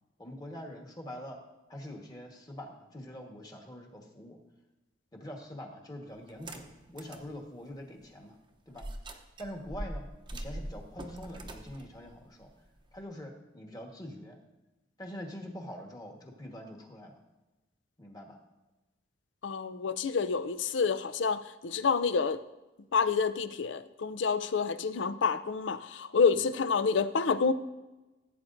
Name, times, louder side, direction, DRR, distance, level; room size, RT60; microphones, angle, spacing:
voice 1, 0.2-1.4 1.7-4.4 5.1-8.4 8.7-8.8 9.4-10.1 10.3-12.5 12.9-14.4 15.0-17.2 18.0-18.4 26.3-26.5, equal, 20° left, 1 dB, 1.4 m, -44 dB
sound 1, 6.3-7.3 7.7-7.8 8.7-13.0, right 1 dB, 25° right, 0.7 m, -42 dB
voice 2, 19.4-22.4 22.9-27.5, left 5 dB, 75° left, 13 dB, 0.5 m, -28 dB
16.0 x 8.5 x 2.6 m, 1.1 s
head